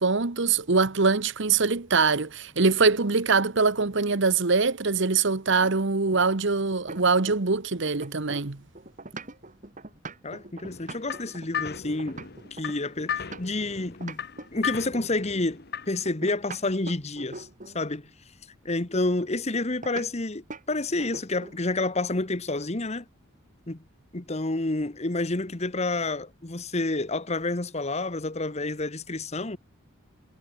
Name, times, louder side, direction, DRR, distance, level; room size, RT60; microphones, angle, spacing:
voice 1, 0.0-8.6, right 4 dB, 60° right, 1.1 m, -23 dB
sound 1, 5.6-7.6 7.9-13.7 14.0-15.2 16.1-17.8 19.8-20.1 20.5-20.7 21.0-21.6, right 3 dB, 35° right, 2.3 m, -42 dB
voice 2, 10.2-12.2 12.5-14.2 14.5-17.5 17.7-18.1 18.6-23.0 23.7-23.8 24.1-29.6, left 2 dB, 30° left, 1.2 m, -29 dB
sound 2, 10.7-16.1, left 7 dB, 50° left, 1.2 m, -36 dB
head